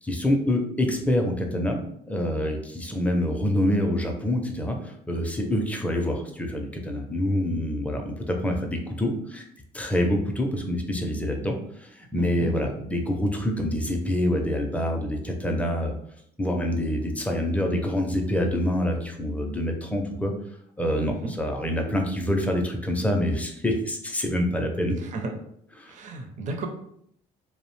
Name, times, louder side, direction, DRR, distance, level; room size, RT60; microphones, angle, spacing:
voice 1, 0.0-1.8 2.1-9.5 9.7-15.9 16.4-20.3 20.8-24.9 25.8-25.9, left 1 dB, 10° left, 2 dB, 0.4 m, -26 dB
voice 2, 12.2-12.5 21.1-21.3 25.1-25.3 25.9-26.7, right 3 dB, 45° right, 3 dB, 0.5 m, -33 dB
2.5 x 2.0 x 3.0 m, 0.70 s
cardioid pair, 110°, 17 cm